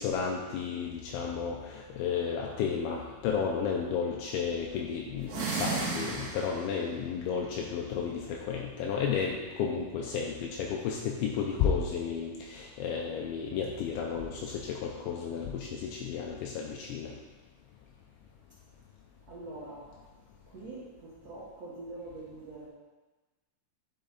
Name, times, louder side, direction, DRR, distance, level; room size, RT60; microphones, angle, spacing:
voice 1, 0.0-17.1, left 6 dB, 80° left, 0 dB, 2.9 m, -32 dB
sound 1, 5.2-6.8, right 4 dB, 65° right, 1.8 m, -33 dB
voice 2, 19.3-19.9 20.5-22.7, right 2 dB, 80° right, -8 dB, 1.4 m, -44 dB
10.0 x 7.1 x 4.0 m, 1.2 s
omnidirectional pair, 5.7 m